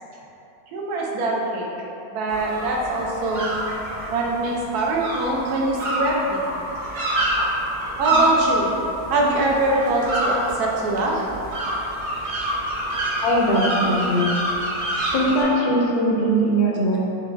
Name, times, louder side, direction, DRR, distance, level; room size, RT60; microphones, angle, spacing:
voice 1, 0.7-1.7 2.1-3.5 4.1-6.5 8.0-8.7 9.1-11.2, right 2 dB, 85° right, -2 dB, 1.2 m, -23 dB
sound 1, 2.3-15.4, right 1 dB, 50° right, 0.6 m, -27 dB
voice 2, 13.2-14.3 15.1-17.0, right 1 dB, 90° left, -3 dB, 1.2 m, -20 dB
4.7 x 2.8 x 2.5 m, 2.9 s
omnidirectional pair, 1.6 m